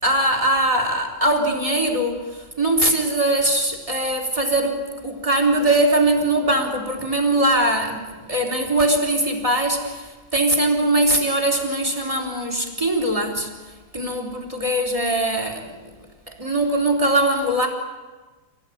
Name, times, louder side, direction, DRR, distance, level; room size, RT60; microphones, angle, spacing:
voice 1, 0.0-13.5 13.9-15.8 16.3-17.7, right 1 dB, 15° right, 3 dB, 3.9 m, -21 dB
26.5 x 18.5 x 9.4 m, 1.3 s
omnidirectional pair, 2.3 m